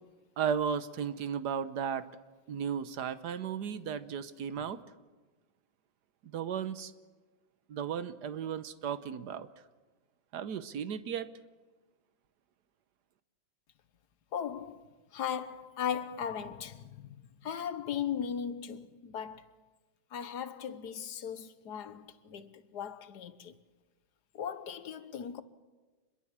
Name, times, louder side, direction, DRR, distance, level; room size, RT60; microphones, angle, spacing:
voice 1, 0.4-2.1 2.5-4.8 6.2-6.9 7.7-9.5 10.3-11.3, right 7 dB, 60° right, 1.4 m, -35 dB
voice 2, 14.3-17.2 17.4-19.5 20.1-23.6 24.3-25.4, left 8 dB, 60° left, 1.5 m, -38 dB
26.0 x 22.0 x 7.4 m
omnidirectional pair, 2.2 m